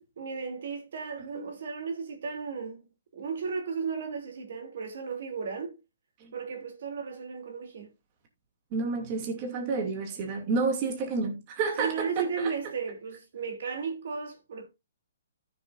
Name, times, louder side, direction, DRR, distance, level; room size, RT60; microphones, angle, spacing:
voice 1, 0.2-2.9 3.1-5.8 6.3-7.9 11.8-14.7, right 5 dB, 60° right, 2.9 m, -35 dB
voice 2, 8.7-12.5, right 4 dB, 30° right, 2.5 m, -30 dB
14.0 x 7.3 x 2.5 m
hypercardioid pair, 160°, 0 cm